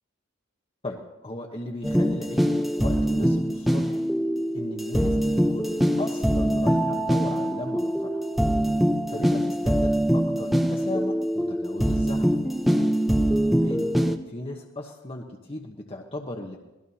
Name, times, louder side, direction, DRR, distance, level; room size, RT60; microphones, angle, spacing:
voice 1, 0.8-4.0 4.5-5.7 6.0-8.2 9.1-12.3 13.5-13.9 14.3-16.6, left 1 dB, 30° left, 0 dB, 1.1 m, -36 dB
sound 1, 1.8-14.2, equal, ahead, 0.7 m, -23 dB
26.5 x 18.5 x 2.9 m, 1.0 s
head